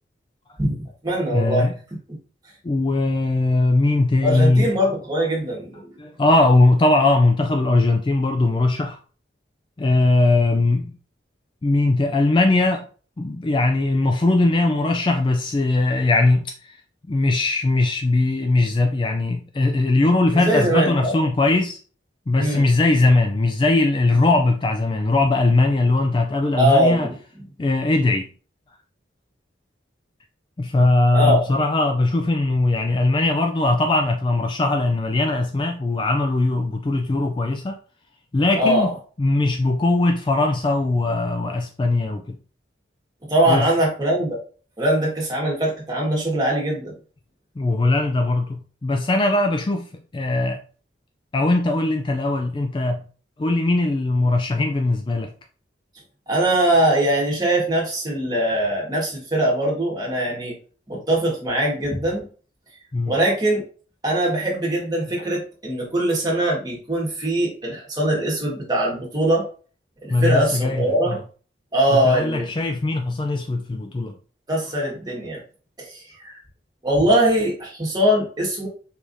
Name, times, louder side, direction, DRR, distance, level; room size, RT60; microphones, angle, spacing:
voice 1, 0.6-1.7 4.2-6.0 20.3-21.2 22.4-22.6 26.6-27.1 31.1-31.4 38.5-38.9 43.2-44.4 44.8-47.0 56.3-60.6 60.9-62.3 63.1-63.6 64.0-69.5 70.0-71.2 71.7-72.5 74.5-75.4 75.8-76.4 76.8-78.7, right 1 dB, 20° right, 1.5 m, -21 dB
voice 2, 1.3-1.7 2.6-4.7 6.0-9.0 9.8-10.9 11.6-12.9 13.2-16.8 17.1-21.8 22.3-27.1 27.6-28.3 30.6-37.8 38.3-38.9 39.2-42.4 43.5-43.7 47.6-49.9 50.1-50.6 51.3-53.0 53.4-55.3 62.9-63.1 70.1-71.2 71.9-74.1, left 2 dB, 25° left, 0.3 m, -20 dB
4.8 x 3.4 x 2.6 m
head